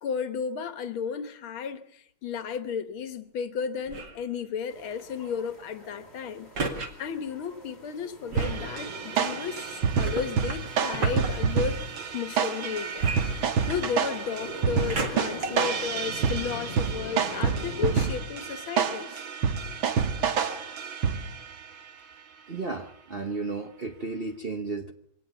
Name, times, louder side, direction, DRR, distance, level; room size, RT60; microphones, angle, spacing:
voice 1, 0.0-6.5 7.0-11.8 12.1-13.2 13.7-19.2, left 6 dB, 85° left, 2.0 m, -33 dB
sound 1, 3.9-4.3 6.6-6.9 8.3-8.6 10.0-11.3 13.0-14.0 14.9-15.4 16.1-16.2, right 3 dB, 60° right, 2.7 m, -33 dB
sound 2, 4.7-18.0, equal, 30° left, 5.6 m, -44 dB
sound 3, 8.4-21.5, right 6 dB, 80° right, 2.2 m, -28 dB
voice 2, 22.5-24.9, right 3 dB, 40° right, 0.9 m, -33 dB
23.0 x 18.0 x 7.0 m
omnidirectional pair, 2.2 m